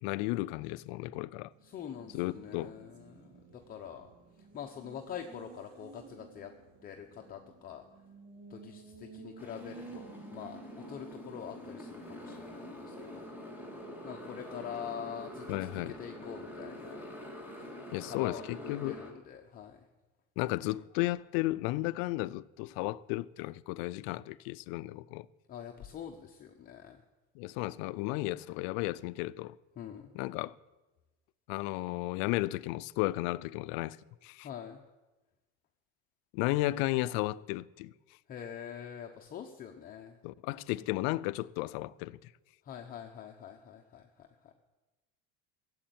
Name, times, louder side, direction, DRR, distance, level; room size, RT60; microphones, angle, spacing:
voice 1, 0.0-1.5 2.1-2.7 15.5-16.0 17.9-19.0 20.4-25.3 27.4-29.6 30.1-30.5 31.5-34.0 34.2-34.5 36.3-37.9 40.2-42.2, left 19 dB, 70° left, 0.5 m, -34 dB
Race car auto racing, 1.5-17.8, right 4 dB, 50° right, 3.4 m, -55 dB
voice 2, 1.6-4.1 4.5-6.5 6.8-7.8 8.5-13.3 14.0-17.0 18.0-18.4 18.8-19.8 25.5-27.0 29.8-30.1 34.4-34.8 38.3-40.2 42.7-44.1 44.4-44.5, left 8 dB, 30° left, 0.8 m, -45 dB
Motorcycle, 9.4-19.1, left 1 dB, 5° right, 1.7 m, -46 dB
16.0 x 8.0 x 9.2 m
cardioid pair, 165°, 31 cm